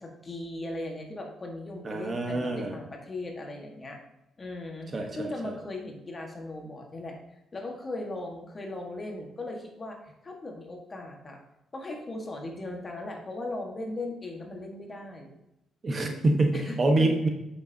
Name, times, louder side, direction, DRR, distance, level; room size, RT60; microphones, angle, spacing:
voice 1, 0.0-4.0 4.4-11.4 11.7-15.3 16.5-17.1, left 2 dB, 30° left, 2 dB, 1.7 m, -38 dB
voice 2, 1.8-2.8 4.9-5.5 15.8-17.3, right 2 dB, 35° right, 3 dB, 1.3 m, -26 dB
8.4 x 6.6 x 2.9 m, 0.89 s
cardioid pair, 90°, 0 cm